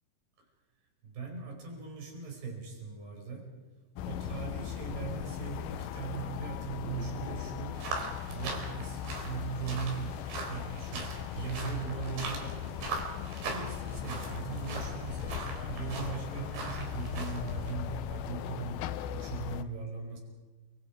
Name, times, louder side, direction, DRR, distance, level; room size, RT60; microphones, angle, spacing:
voice 1, 1.0-3.5 4.1-7.9 8.3-10.2 10.5-12.8 13.5-20.2, right 5 dB, 60° right, 1 dB, 7.1 m, -39 dB
sound 1, 4.0-19.6, left 10 dB, 75° left, 2.2 m, -39 dB
sound 2, 7.7-17.7, right 4 dB, 80° right, 6.3 m, -41 dB
30.0 x 26.5 x 4.9 m, 1.3 s
omnidirectional pair, 5.1 m